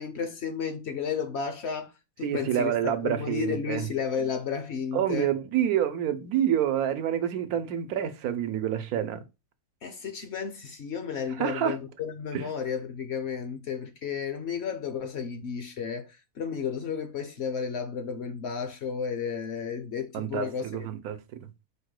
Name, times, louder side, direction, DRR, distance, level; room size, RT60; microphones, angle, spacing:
voice 1, 0.0-1.9 2.2-5.3 9.8-20.9, left 6 dB, 60° left, 0.8 m, -33 dB
voice 2, 2.2-3.9 4.9-9.2 11.3-11.8 12.3-12.5 20.1-21.4, right 10 dB, 85° right, 1.2 m, -28 dB
5.0 x 2.2 x 4.7 m
omnidirectional pair, 1.5 m